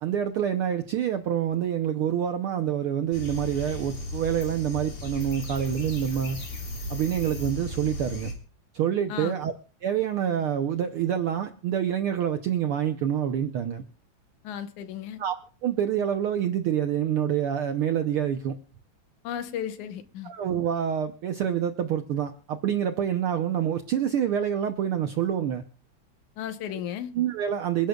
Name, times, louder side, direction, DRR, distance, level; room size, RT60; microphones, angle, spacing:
voice 1, 0.0-6.4 6.9-8.3 8.7-9.5 9.8-13.8 15.2-15.4 15.6-18.6 20.2-25.6 27.1-27.9, right 9 dB, 75° right, 1.2 m, -27 dB
sound 1, 3.1-8.3, left 1 dB, 65° left, 4.7 m, -36 dB
voice 2, 14.4-15.2 19.2-20.3 26.4-27.1, left 9 dB, 90° left, 2.5 m, -34 dB
27.5 x 10.5 x 2.3 m
omnidirectional pair, 3.3 m